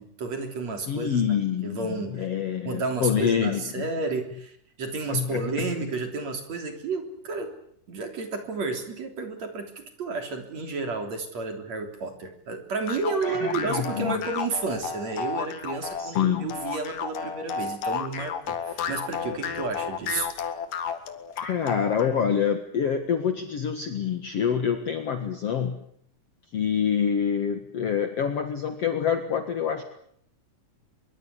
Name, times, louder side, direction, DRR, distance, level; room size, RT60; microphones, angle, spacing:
voice 1, 0.0-1.4 1.6-2.2 2.7-7.5 7.9-20.3, right 4 dB, 50° right, 6 dB, 4.5 m, -31 dB
voice 2, 0.9-3.8 5.1-5.7 13.2-14.2 16.0-16.5 21.4-25.8 26.5-29.8, left 7 dB, 50° left, 7 dB, 2.4 m, -26 dB
sound 1, 12.9-22.2, left 7 dB, 75° left, 3.5 m, -32 dB
24.0 x 23.5 x 8.3 m, 0.67 s
omnidirectional pair, 3.9 m